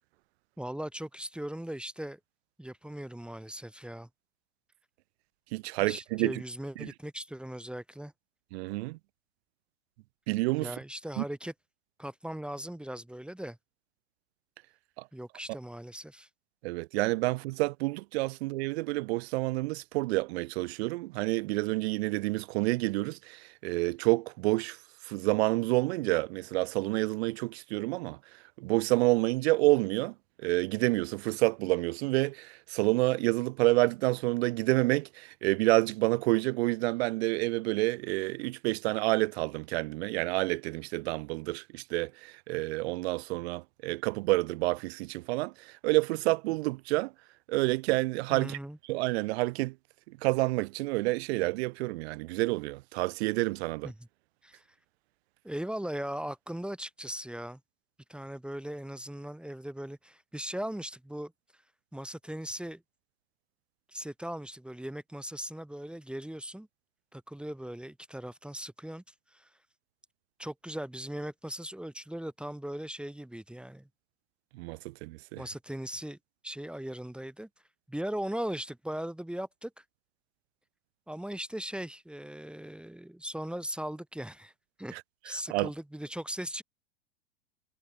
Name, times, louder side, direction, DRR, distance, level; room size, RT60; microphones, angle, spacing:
voice 1, 0.6-2.2 2.6-4.1 5.8-8.1 10.6-11.5 12.0-13.6 15.1-16.3 48.3-48.8 53.8-53.9 54.4-54.6 55.4-57.6 58.1-61.3 61.9-62.8 63.9-66.7 67.1-69.5 70.4-73.9 75.4-76.2 76.4-77.5 77.9-79.8 81.1-84.5 84.8-85.0 85.2-86.6, right 1 dB, 5° right, 3.7 m, -39 dB
voice 2, 5.5-6.4 6.8-6.9 8.5-9.0 10.3-10.7 11.2-11.3 16.6-24.8 25.0-28.2 28.6-30.1 30.4-47.1 47.5-48.6 48.9-49.7 50.2-53.9 74.6-75.4 84.9-85.0 85.5-85.7, right 22 dB, 55° right, 0.9 m, -28 dB
hypercardioid pair, 100°, 38 cm